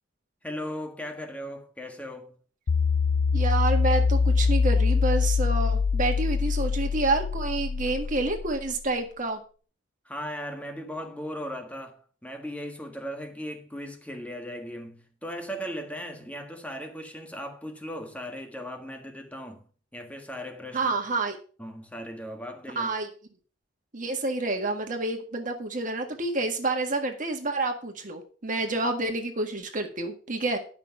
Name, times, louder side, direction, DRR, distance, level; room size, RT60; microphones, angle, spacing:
voice 1, 0.4-2.4 10.0-19.7 19.9-20.9 21.6-22.9, equal, 5° left, 1.6 m, -37 dB
sound 1, 2.7-8.9, left 4 dB, 75° left, 0.5 m, -24 dB
voice 2, 3.3-9.4 20.7-21.4 22.8-23.1 23.9-30.6, right 2 dB, 45° right, 1.7 m, -28 dB
11.0 x 6.0 x 5.9 m
head